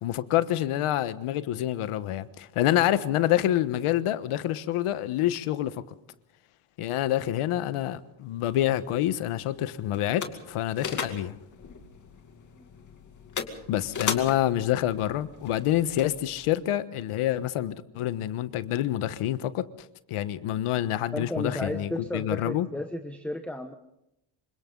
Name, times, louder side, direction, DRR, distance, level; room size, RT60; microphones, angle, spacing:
voice 1, 0.0-5.7 6.8-11.4 13.7-19.7 20.1-22.7, left 13 dB, 85° left, 13 dB, 1.4 m, -27 dB
sound 1, 8.5-16.5, left 6 dB, 35° left, 2.4 m, -38 dB
voice 2, 21.1-23.7, left 1 dB, 5° left, 5 dB, 1.0 m, -33 dB
27.5 x 25.5 x 3.9 m, 0.81 s
cardioid pair, 175°, 50 cm